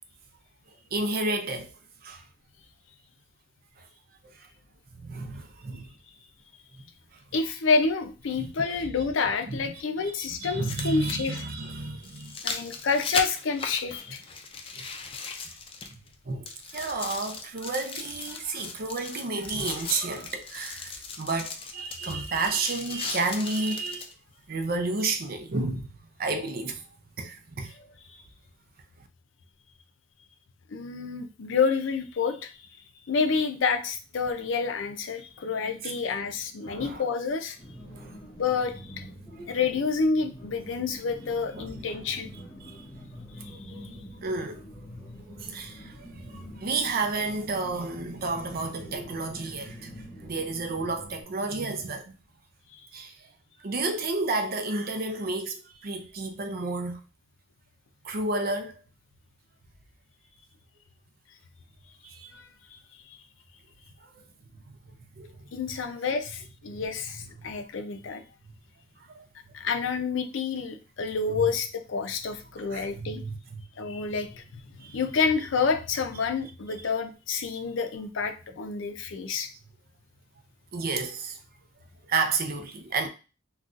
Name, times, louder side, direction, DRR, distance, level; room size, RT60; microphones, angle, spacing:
voice 1, 0.9-1.7 2.0-2.2 3.8-3.9 4.2-4.5 4.9-5.9 6.7-6.8 8.3-8.5 9.5-9.7 10.0-10.1 10.4-12.4 14.8-14.9 16.3-24.1 24.5-25.9 26.2-26.9 27.2-27.7 35.8-35.9 36.6-37.0 37.9-38.1 41.5-42.0 42.6-42.9 44.2-44.6 45.4-52.2 52.9-53.1 53.6-57.0 58.0-58.7 62.0-62.3 64.5-64.8 65.2-65.8 66.7-66.8 67.2-67.5 68.4-68.6 69.1-69.3 71.3-71.5 72.7-74.0 74.8-75.0 76.8-76.9 80.7-81.4 82.1-83.1, right 3 dB, 50° right, 0.5 m, -31 dB
sound 1, 7.2-7.3 9.2-9.3 10.4-16.2 16.5-24.1 24.7-24.8, left 4 dB, 30° left, 0.4 m, -37 dB
voice 2, 7.3-11.4 12.4-14.2 30.7-32.5 33.1-37.6 38.4-39.0 39.5-42.3 43.4-43.6 62.3-62.8 63.0-63.2 65.5-68.2 69.5-73.2 73.8-79.5, left 5 dB, 80° left, 0.5 m, -28 dB
sound 2, 37.6-51.2, equal, 15° left, 1.4 m, -45 dB
3.8 x 2.3 x 2.4 m
head